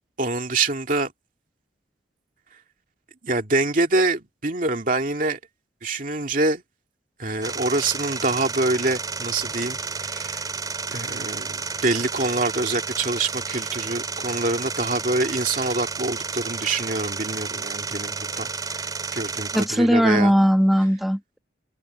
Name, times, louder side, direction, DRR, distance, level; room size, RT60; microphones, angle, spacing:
voice 1, 0.2-1.1 3.2-5.4 5.8-6.6 7.2-10.5 10.9-20.3, right 2 dB, 45° right, 2.4 m, -25 dB
sound 1, 7.4-19.7, right 4 dB, 20° right, 3.2 m, -31 dB
voice 2, 19.5-21.4, equal, ahead, 1.4 m, -19 dB
head